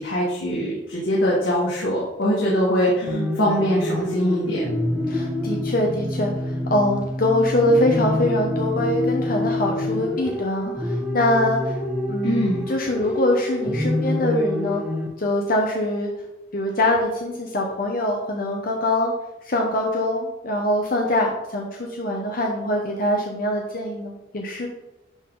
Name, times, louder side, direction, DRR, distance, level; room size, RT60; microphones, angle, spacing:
voice 1, 0.0-4.7 12.2-12.6, equal, 85° left, -6 dB, 2.0 m, -22 dB
voice 2, 3.0-3.4 5.1-11.8 12.1-14.8 15.2-16.1 16.5-19.1 19.4-24.7, left 1 dB, 50° left, 0 dB, 0.9 m, -23 dB
sound 1, 3.1-15.1, left 1 dB, 5° right, 0.8 m, -26 dB
11.0 x 3.9 x 3.9 m, 0.96 s
head